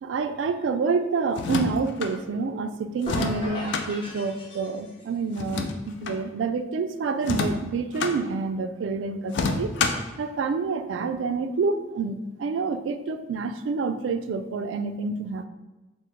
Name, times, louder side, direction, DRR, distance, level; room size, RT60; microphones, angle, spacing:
voice 1, 0.0-15.5, right 4 dB, 85° right, 10 dB, 0.3 m, -28 dB
sound 1, 1.3-2.1 3.0-3.9 5.3-6.2 7.2-8.2 9.3-10.1, left 4 dB, 70° left, 0.4 m, -28 dB
sound 2, 3.1-5.2, left 1 dB, 30° left, 0.7 m, -37 dB
3.7 x 2.1 x 4.4 m, 1.1 s
head